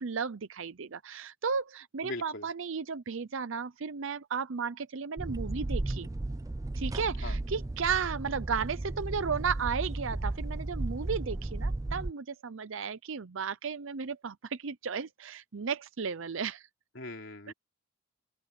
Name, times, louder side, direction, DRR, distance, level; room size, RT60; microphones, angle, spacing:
voice 1, 0.0-6.1 6.8-16.7 17.5-17.6, right 6 dB, 60° right, 0.6 m, -34 dB
voice 2, 2.0-2.5 7.2-7.4 16.9-17.5, left 2 dB, 55° left, 3.4 m, -40 dB
sound 1, 5.2-12.1, right 2 dB, 15° right, 0.3 m, -34 dB
open air
head